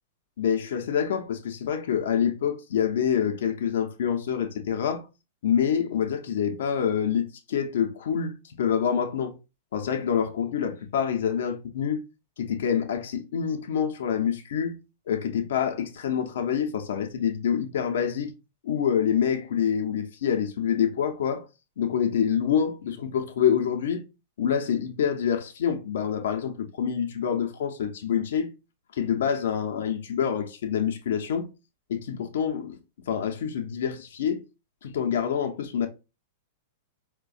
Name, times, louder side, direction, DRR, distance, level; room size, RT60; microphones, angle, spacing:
voice 1, 0.4-5.1 5.4-9.3 9.7-12.0 12.4-14.8 15.1-18.3 18.6-21.4 21.8-24.0 24.4-28.5 28.9-31.5 31.9-32.8 33.1-34.4 34.8-35.9, left 8 dB, 75° left, 0.6 m, -26 dB
4.6 x 2.1 x 2.4 m
hypercardioid pair, 130°, 0 cm